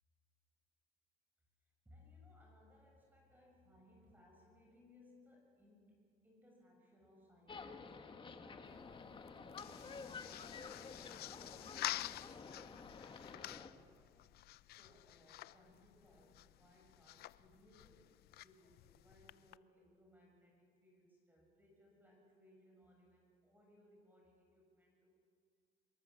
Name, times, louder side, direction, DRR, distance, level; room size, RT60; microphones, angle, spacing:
voice 1, 1.8-14.0 14.7-25.1, left 1 dB, 10° right, -1 dB, 6.7 m, -66 dB
sound 1, 7.5-13.7, left 4 dB, 30° left, 1.6 m, -51 dB
sound 2, 8.6-19.6, left 15 dB, 70° left, 0.5 m, -49 dB
24.0 x 21.0 x 7.3 m, 2.2 s
cardioid pair, 110°, 17 cm